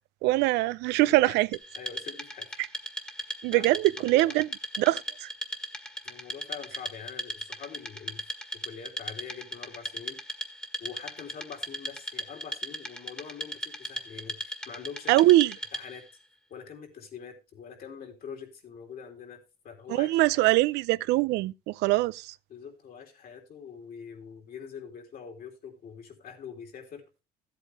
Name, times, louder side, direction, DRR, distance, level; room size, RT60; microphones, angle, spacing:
voice 1, 0.2-1.5 3.4-4.5 4.8-5.3 15.1-15.5 19.9-22.3, right 18 dB, 90° right, 0.5 m, -23 dB
voice 2, 0.9-1.4 1.8-2.6 3.5-4.3 6.0-8.2 8.6-10.2 10.8-15.3 15.7-16.0 16.5-19.4 19.6-20.1 22.5-27.0, left 7 dB, 60° left, 3.6 m, -44 dB
Wood, 1.5-16.1, equal, 5° left, 1.6 m, -38 dB
14.5 x 8.4 x 3.5 m
cardioid pair, 110°, 17 cm